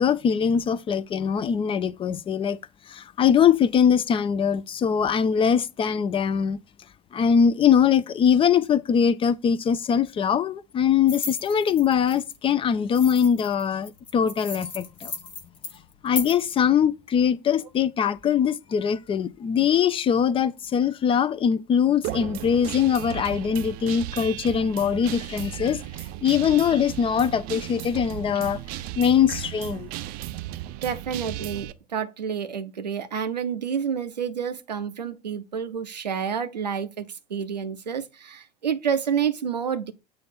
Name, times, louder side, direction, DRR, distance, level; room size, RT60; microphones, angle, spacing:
voice 1, 0.0-2.6 2.9-6.6 7.1-15.1 16.0-25.8 26.2-28.6 29.0-29.9, left 7 dB, 25° left, 0.4 m, -22 dB
sound 1, 11.1-12.4 12.9-16.4, left 4 dB, 85° left, 0.7 m, -36 dB
Guitar, 22.0-31.7, right 14 dB, 45° right, 0.5 m, -35 dB
voice 2, 30.8-39.9, right 7 dB, 80° right, 0.7 m, -29 dB
7.5 x 2.5 x 5.7 m
figure-of-eight pair, 70°, 21 cm